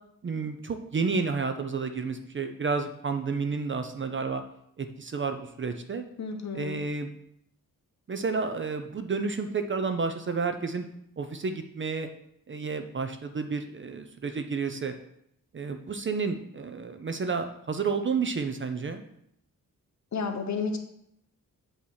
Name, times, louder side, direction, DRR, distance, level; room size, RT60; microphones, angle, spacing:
voice 1, 0.2-4.4 4.8-6.0 6.5-7.1 8.1-10.9 11.2-12.1 12.5-14.9 15.5-19.0, right 4 dB, 35° right, 7 dB, 0.4 m, -31 dB
voice 2, 6.2-6.8 20.1-20.8, left 4 dB, 55° left, 4 dB, 0.9 m, -31 dB
8.3 x 2.9 x 6.3 m, 0.75 s
wide cardioid pair, 175°, 35 cm